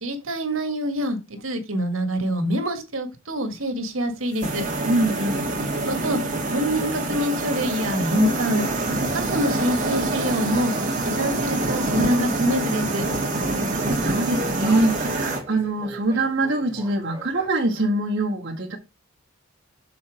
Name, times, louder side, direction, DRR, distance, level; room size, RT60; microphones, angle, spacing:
voice 1, 0.0-4.6 5.9-6.2 6.5-8.7 9.3-10.7 11.0-13.0, equal, 85° right, 1.7 m, -25 dB
sound 1, 4.4-15.4, right 2 dB, 40° right, 2.0 m, -26 dB
voice 2, 4.8-5.5 13.3-18.8, right 2 dB, 60° right, 1.6 m, -24 dB
sound 2, 10.5-17.5, equal, 15° right, 2.6 m, -40 dB
7.1 x 4.3 x 5.0 m
head